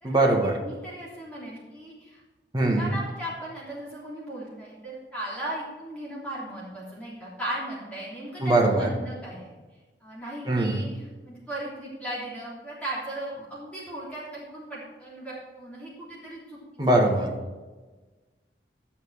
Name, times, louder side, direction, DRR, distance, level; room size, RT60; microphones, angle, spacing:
voice 1, 0.0-0.6 2.5-2.9 8.4-8.9 10.5-10.8 16.8-17.3, right 2 dB, 20° right, 0 dB, 1.6 m, -22 dB
voice 2, 0.6-2.2 2.6-9.5 10.0-16.6, right 1 dB, 5° left, -7 dB, 3.2 m, -37 dB
12.0 x 7.2 x 4.7 m, 1.2 s
head